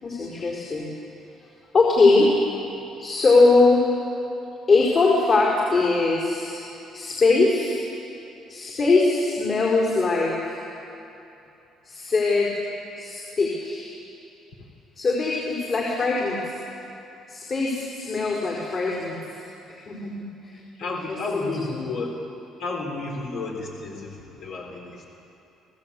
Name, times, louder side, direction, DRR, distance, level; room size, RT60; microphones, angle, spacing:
voice 1, 0.0-0.9 1.7-2.3 3.0-3.9 4.7-6.6 6.9-7.8 8.5-10.6 11.8-12.5 13.0-14.0 15.0-16.4 17.3-19.2 19.7-20.6 21.1-21.5, left 3 dB, 45° left, -4 dB, 4.9 m, -21 dB
voice 2, 20.8-22.1 22.6-25.0, left 3 dB, 75° left, -1 dB, 4.1 m, -32 dB
29.0 x 16.0 x 8.6 m, 2.8 s
cardioid pair, 95°, 0 cm